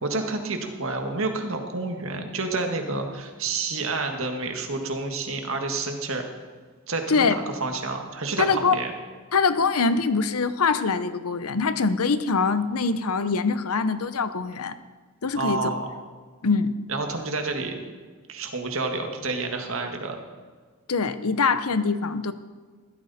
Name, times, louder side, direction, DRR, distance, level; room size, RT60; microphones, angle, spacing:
voice 1, 0.0-6.2 6.9-8.9 15.4-15.9 16.9-17.8 18.3-20.2, right 3 dB, 65° right, 4 dB, 1.8 m, -29 dB
voice 2, 8.4-8.8 9.3-14.8 15.2-15.7 16.4-16.7 20.9-22.3, left 4 dB, 85° left, 12 dB, 0.8 m, -23 dB
15.5 x 13.5 x 4.2 m, 1.5 s
head